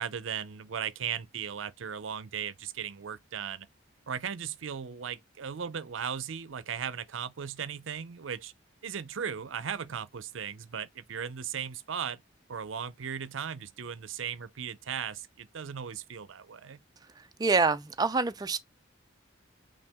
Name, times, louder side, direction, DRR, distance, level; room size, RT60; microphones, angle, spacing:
voice 1, 0.0-3.7 4.1-8.5 8.8-12.2 12.5-16.8, right 7 dB, 75° right, 0.5 m, -37 dB
voice 2, 17.2-18.6, right 4 dB, 20° right, 0.4 m, -26 dB
5.7 x 2.3 x 3.5 m
head